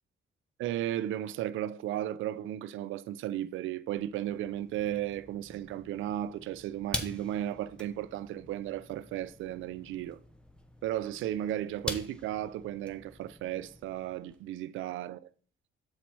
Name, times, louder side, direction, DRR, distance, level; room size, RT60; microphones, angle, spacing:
voice 1, 0.6-10.2 10.8-15.3, right 12 dB, 80° right, 0.5 m, -35 dB
sound 1, 3.9-14.4, equal, 5° left, 0.8 m, -45 dB
7.4 x 4.1 x 4.5 m
cardioid pair, 90°, 20 cm